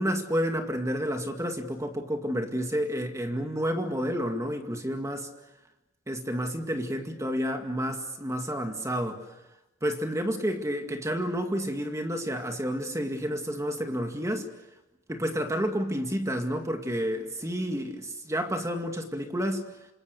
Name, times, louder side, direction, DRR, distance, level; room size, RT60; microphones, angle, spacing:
voice 1, 0.0-5.3 6.1-9.2 9.8-14.5 15.1-19.6, equal, 15° right, 5 dB, 2.1 m, -30 dB
27.5 x 27.0 x 6.7 m, 0.99 s
head